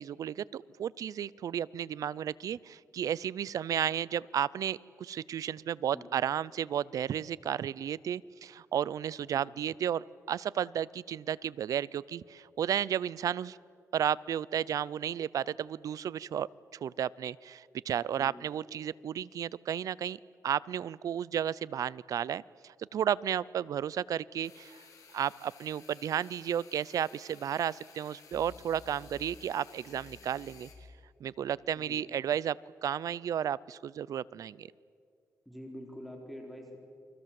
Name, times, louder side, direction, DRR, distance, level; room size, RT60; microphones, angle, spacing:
voice 1, 0.0-13.6 13.9-20.2 20.4-24.8 25.1-30.7 31.2-32.6 32.8-34.7, right 9 dB, 70° right, 21 dB, 0.6 m, -33 dB
voice 2, 18.2-18.5 31.7-32.0 35.5-36.8, equal, ahead, 1 dB, 4.4 m, -46 dB
sound 1, 24.4-30.7, left 5 dB, 65° left, 4.3 m, -54 dB
29.5 x 23.5 x 7.7 m, 2.3 s
cardioid pair, 105°, 6 cm